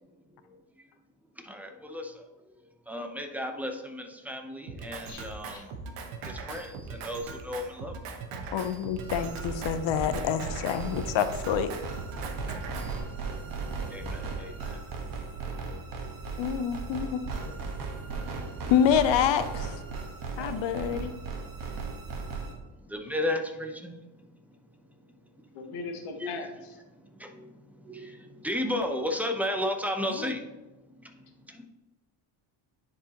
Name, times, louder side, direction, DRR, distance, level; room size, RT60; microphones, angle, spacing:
voice 1, 1.4-2.2 2.9-5.7 6.2-7.9 13.8-14.8 15.5-15.8 17.4-17.5 18.1-18.3 20.3-20.5 22.8-23.9 25.4-25.5 26.2-26.3 27.2-30.4 31.0-31.1 31.4-31.7, left 1 dB, 5° right, 4 dB, 0.6 m, -34 dB
Drum kit, 4.7-13.0, right 4 dB, 80° right, 1.0 m, -40 dB
voice 2, 5.0-5.7 23.0-23.1 25.5-26.8, left 3 dB, 85° left, 4 dB, 1.3 m, -40 dB
voice 3, 8.5-11.7 16.4-17.2 18.7-19.7 20.4-21.1 30.1-30.3, left 8 dB, 65° left, 11 dB, 0.6 m, -27 dB
sound 1, 9.0-22.5, right 4 dB, 45° right, 1.3 m, -36 dB
10.0 x 4.7 x 2.9 m, 1.2 s
cardioid pair, 115°, 49 cm